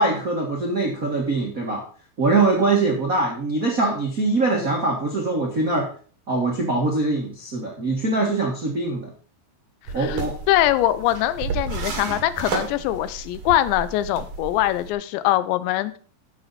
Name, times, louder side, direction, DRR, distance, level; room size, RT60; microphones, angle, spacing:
voice 1, 0.0-1.8 2.2-5.9 6.3-9.1 9.9-10.3, right 3 dB, 85° right, -1 dB, 0.7 m, -22 dB
sound 1, 9.9-14.9, right 5 dB, 60° right, 1.5 m, -32 dB
voice 2, 10.5-16.0, left 14 dB, 90° left, 14 dB, 3.0 m, -22 dB
11.0 x 7.7 x 4.1 m, 0.42 s
omnidirectional pair, 5.0 m